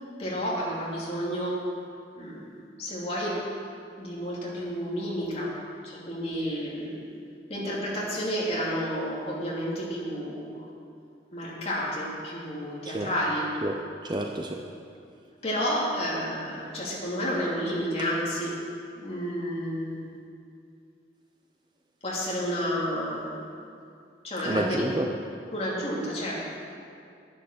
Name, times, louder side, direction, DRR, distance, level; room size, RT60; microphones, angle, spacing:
voice 1, 0.2-1.6 2.1-3.4 4.0-5.6 5.8-7.1 7.5-10.7 11.3-13.5 15.4-18.6 19.0-20.0 22.0-23.4 24.2-24.8 25.5-26.4, equal, 35° left, -5 dB, 2.7 m, -31 dB
voice 2, 13.6-14.6 24.4-25.1, right 1 dB, 25° right, 3 dB, 0.6 m, -30 dB
10.5 x 10.0 x 6.5 m, 2.4 s
head